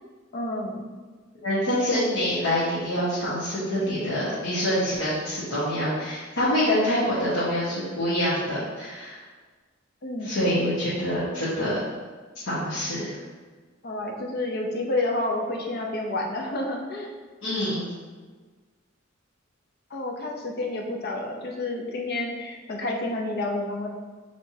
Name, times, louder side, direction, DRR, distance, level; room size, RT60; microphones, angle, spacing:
voice 1, 0.3-0.8 10.0-10.4 13.8-17.1 19.9-23.9, left 2 dB, 50° left, 1 dB, 0.7 m, -29 dB
voice 2, 1.4-9.2 10.2-11.8 12.5-13.2 17.4-17.8, equal, 80° left, -10 dB, 1.3 m, -26 dB
5.6 x 3.3 x 2.7 m, 1.4 s
head